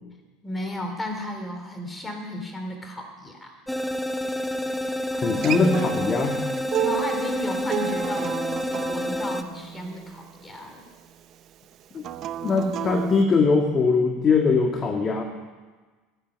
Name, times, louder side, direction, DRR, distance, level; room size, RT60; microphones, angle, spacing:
voice 1, 0.4-3.6 6.8-10.8, left 1 dB, 20° left, 4 dB, 3.3 m, -34 dB
sound 1, 3.7-9.4, left 1 dB, 5° left, 1.0 m, -29 dB
voice 2, 5.1-6.4 11.9-12.1 12.4-15.2, left 4 dB, 35° left, 3 dB, 1.9 m, -21 dB
Acoustic guitar, 5.2-10.4 12.0-13.2, right 11 dB, 45° right, 0.8 m, -32 dB
17.0 x 8.9 x 6.4 m, 1.4 s
hypercardioid pair, 75°, 0 cm